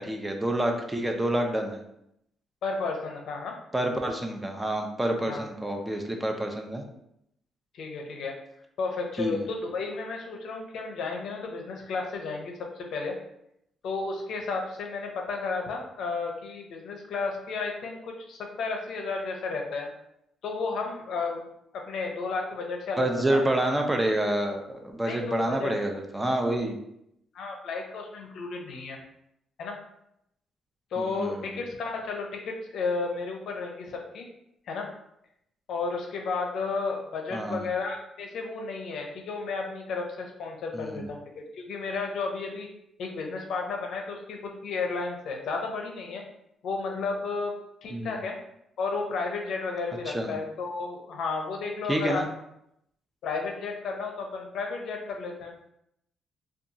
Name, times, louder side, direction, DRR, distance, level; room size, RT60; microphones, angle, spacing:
voice 1, 0.0-1.8 3.7-6.8 9.2-9.4 23.0-26.8 31.0-31.5 37.3-37.7 40.7-41.1 47.9-48.2 50.1-50.3 51.9-52.3, right 1 dB, 10° right, 3 dB, 0.4 m, -28 dB
voice 2, 2.6-3.5 5.3-5.5 7.7-8.3 8.8-13.2 13.8-19.9 20.4-21.4 21.7-23.5 25.1-25.7 27.3-29.0 29.6-29.8 30.9-34.3 34.7-34.9 35.7-42.7 43.0-46.2 46.6-47.5 47.8-48.4 48.8-52.2 53.2-55.5, left 4 dB, 75° left, 1 dB, 0.5 m, -33 dB
2.7 x 2.3 x 2.6 m, 0.78 s
cardioid pair, 90°, 0 cm